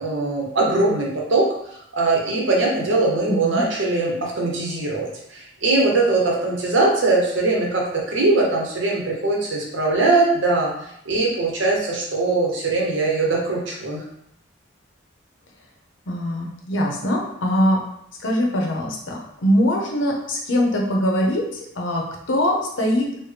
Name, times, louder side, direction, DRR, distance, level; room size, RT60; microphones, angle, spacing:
voice 1, 0.0-1.5 1.9-10.7 11.1-14.0, right 3 dB, 80° right, -2 dB, 1.0 m, -21 dB
voice 2, 3.3-3.6 16.1-17.8 18.2-21.4 21.8-23.1, equal, 80° left, 0 dB, 0.8 m, -22 dB
4.3 x 2.2 x 3.3 m, 0.75 s
head